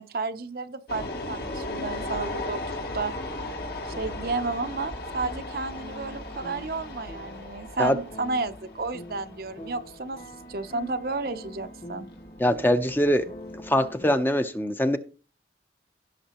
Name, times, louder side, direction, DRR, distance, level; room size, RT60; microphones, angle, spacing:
voice 1, 0.0-3.1 3.8-10.2 10.5-12.1, right 3 dB, 55° right, 0.7 m, -32 dB
sound 1, 0.9-14.0, left 2 dB, 60° left, 1.9 m, -37 dB
sound 2, 3.4-14.1, equal, 40° left, 1.9 m, -45 dB
voice 2, 12.4-13.2 13.6-15.0, equal, 10° left, 0.7 m, -23 dB
16.5 x 6.6 x 3.0 m
head